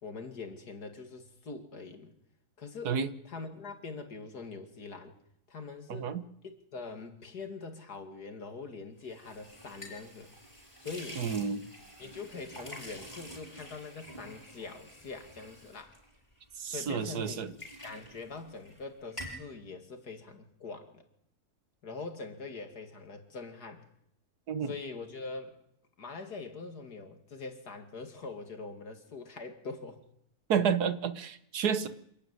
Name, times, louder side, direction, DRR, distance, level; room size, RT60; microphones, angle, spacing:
voice 1, 0.0-2.1 2.6-2.9 3.2-5.1 5.5-6.1 6.4-10.3 10.8-11.2 12.0-15.9 16.7-17.4 17.8-21.0 21.8-23.8 24.6-25.6 26.0-30.0, left 4 dB, 85° left, 6 dB, 3.0 m, -43 dB
voice 2, 5.9-6.2 11.2-11.6 16.6-17.5 24.5-24.7 30.5-31.9, right 7 dB, 80° right, 13 dB, 1.8 m, -30 dB
sound 1, 9.0-16.8 17.1-18.8 19.1-19.5, equal, 20° left, 7.3 m, -48 dB
26.5 x 12.5 x 9.7 m, 0.75 s
omnidirectional pair, 1.6 m